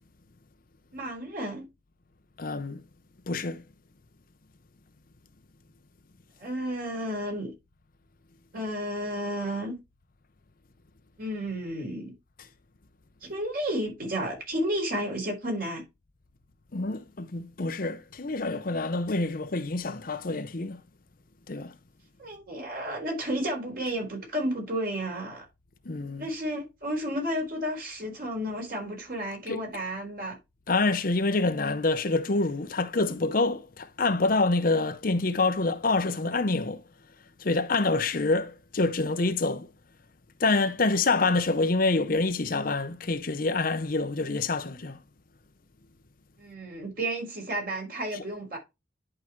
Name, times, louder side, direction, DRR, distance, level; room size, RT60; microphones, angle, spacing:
voice 1, 0.9-1.7 6.4-7.5 8.5-9.8 11.2-12.1 13.2-15.8 22.2-25.4 26.2-30.4 46.4-48.6, equal, 50° right, 4.2 m, -32 dB
voice 2, 2.4-2.8 3.3-3.6 16.7-20.8 21.5-21.8 25.8-26.3 29.5-29.6 30.7-36.8 37.4-39.7 40.4-45.0, left 3 dB, 50° left, 0.7 m, -26 dB
11.0 x 4.8 x 3.1 m
head